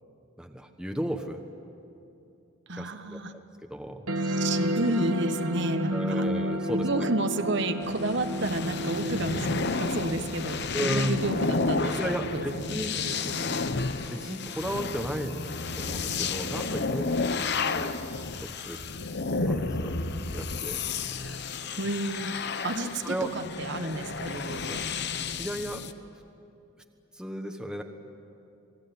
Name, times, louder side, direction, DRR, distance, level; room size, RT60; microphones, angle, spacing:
voice 1, 0.4-1.4 2.8-4.1 5.9-6.9 10.7-11.2 12.0-12.9 14.1-15.4 15.7-17.9 18.3-18.8 19.4-20.0 20.3-20.8 21.0-21.4 23.0-23.3 25.4-25.8 27.1-27.8, equal, 5° right, 5 dB, 1.2 m, -34 dB
voice 2, 2.7-3.3 4.3-6.2 6.7-9.5 9.8-13.4 21.8-22.4 22.6-24.8, right 2 dB, 55° right, 7 dB, 1.2 m, -31 dB
sound 1, 4.1-15.1, equal, 75° right, 1.5 m, -33 dB
sound 2, 7.8-25.9, left 4 dB, 50° left, 1.0 m, -32 dB
27.5 x 20.0 x 9.4 m, 2.7 s
head